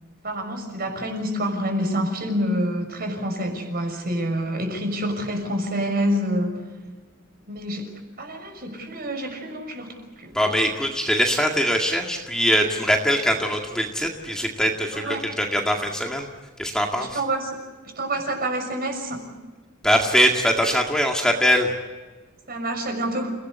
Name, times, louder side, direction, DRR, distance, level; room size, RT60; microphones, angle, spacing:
voice 1, 0.2-6.6 7.5-10.3 14.9-15.2 17.0-17.5 18.0-19.3 22.5-23.3, equal, 45° right, 5 dB, 6.3 m, -27 dB
voice 2, 10.3-16.3 16.6-17.2 19.8-21.7, equal, 5° left, 1 dB, 2.0 m, -22 dB
30.0 x 18.5 x 8.2 m, 1.3 s
head